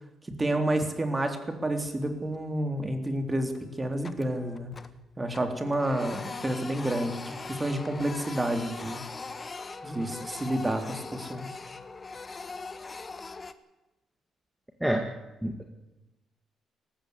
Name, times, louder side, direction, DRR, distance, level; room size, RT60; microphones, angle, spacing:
voice 1, 0.4-4.7 5.2-9.0 9.8-11.5, right 1 dB, 20° right, 7 dB, 3.5 m, -30 dB
Printer, 1.9-2.6 2.9-3.1 3.5-5.0 5.3-13.5, left 4 dB, 30° left, 1.4 m, -41 dB
voice 2, 14.8-15.1 15.4-15.6, equal, 5° right, 4 dB, 2.2 m, -27 dB
18.5 x 15.0 x 9.8 m, 1.0 s
cardioid pair, 90°, 0 cm